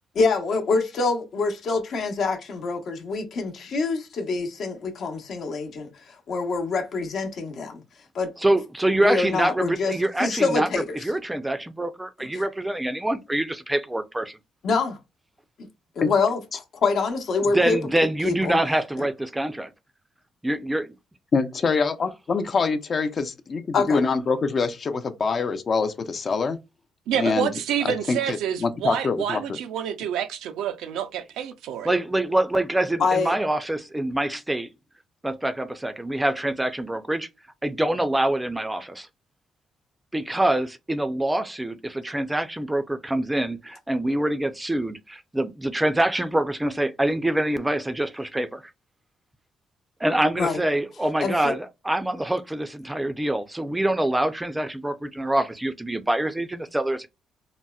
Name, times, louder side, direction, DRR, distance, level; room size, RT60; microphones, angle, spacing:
voice 1, 0.1-7.8 8.1-8.3 9.0-9.9 10.2-11.0 12.3-12.4 14.6-15.0 16.0-17.8 18.2-18.6 19.0-19.1 23.7-24.0 33.0-33.4 50.4-50.6 51.2-51.6, left 4 dB, 65° left, 0.9 m, -25 dB
voice 2, 8.4-14.4 17.4-19.7 20.4-20.9 31.8-34.7 35.2-37.3 37.6-39.1 40.1-48.6 50.0-57.1, right 1 dB, 10° right, 0.4 m, -25 dB
voice 3, 21.3-26.6 27.1-27.5 27.8-29.6, left 4 dB, 45° left, 0.5 m, -25 dB
voice 4, 27.1-31.9, right 9 dB, 90° right, 0.5 m, -28 dB
4.0 x 2.0 x 2.3 m
cardioid pair, 90°, 0 cm